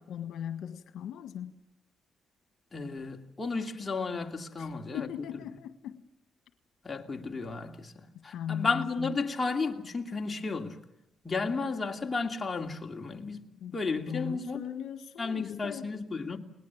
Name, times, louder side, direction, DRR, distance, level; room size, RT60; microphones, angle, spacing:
voice 1, 0.0-1.6 4.6-6.0 8.1-9.1 13.6-13.8 14.1-15.9, left 9 dB, 75° left, 1.5 m, -39 dB
voice 2, 2.7-5.1 6.8-10.8 11.2-13.5 13.7-14.6 15.2-16.4, left 4 dB, 25° left, 2.6 m, -33 dB
29.5 x 19.5 x 7.3 m
cardioid pair, 90°, 0 cm